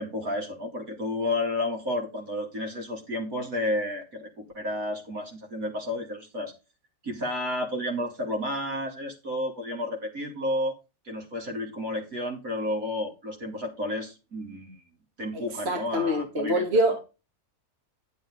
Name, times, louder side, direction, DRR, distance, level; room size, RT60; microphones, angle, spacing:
voice 1, 0.0-6.5 7.0-10.8 11.0-14.8 15.2-16.6, left 1 dB, 65° right, 4.1 m, -31 dB
voice 2, 15.3-17.0, equal, 45° right, 2.0 m, -25 dB
11.0 x 8.3 x 4.0 m
omnidirectional pair, 1.6 m